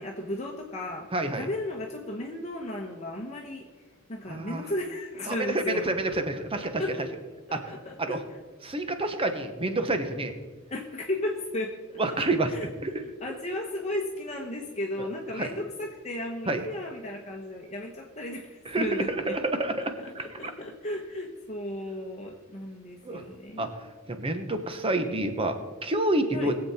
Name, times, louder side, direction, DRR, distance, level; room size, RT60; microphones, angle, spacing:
voice 1, 0.0-1.1 1.3-3.7 4.1-5.8 6.6-7.0 7.5-8.2 10.7-19.4 20.0-23.8 26.3-26.5, left 1 dB, 30° left, 0 dB, 1.1 m, -35 dB
voice 2, 1.1-1.5 4.3-4.6 5.3-6.8 7.5-7.7 8.0-8.2 8.6-10.3 12.0-12.5 12.8-12.9 15.0-15.1 15.3-15.5 16.5-16.6 18.7-20.3 23.0-23.2 23.6-23.7 24.1-25.6 25.8-26.5, right 2 dB, 25° right, 7 dB, 1.1 m, -28 dB
21.0 x 7.9 x 4.3 m, 1.3 s
head